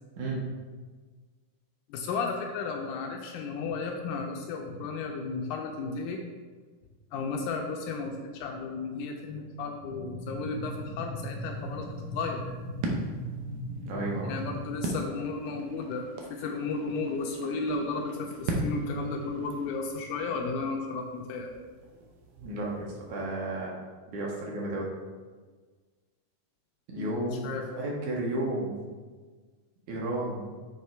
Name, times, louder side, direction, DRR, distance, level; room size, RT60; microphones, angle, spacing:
voice 1, 0.2-0.5 13.8-14.5 22.4-23.8 24.1-24.9 26.9-28.9 29.9-30.6, right 2 dB, 70° right, -3 dB, 2.3 m, -33 dB
voice 2, 1.9-6.2 7.1-12.5 14.3-21.6 26.9-27.1 27.4-27.7, left 4 dB, 80° left, 2 dB, 1.9 m, -34 dB
sound 1, 9.8-14.8, equal, 20° left, 0.5 m, -38 dB
sound 2, 11.5-23.2, right 2 dB, 90° right, 2.6 m, -40 dB
7.5 x 3.6 x 4.4 m, 1.4 s
omnidirectional pair, 3.9 m